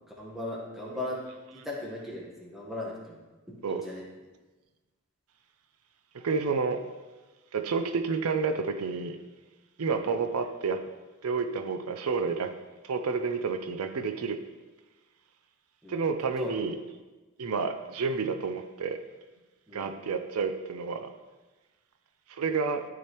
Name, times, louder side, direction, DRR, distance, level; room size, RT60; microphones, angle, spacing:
voice 1, 0.2-1.2 1.5-3.2 3.5-4.0 9.8-10.1 15.8-16.0 16.4-16.5 19.7-19.9, left 2 dB, ahead, -4 dB, 1.3 m, -38 dB
voice 2, 6.1-6.8 7.5-9.2 9.8-10.8 11.2-12.5 12.8-14.4 15.9-16.8 17.4-19.0 19.7-21.1 22.3-22.8, right 5 dB, 90° right, 8 dB, 0.6 m, -30 dB
12.0 x 4.9 x 3.1 m, 1.2 s
head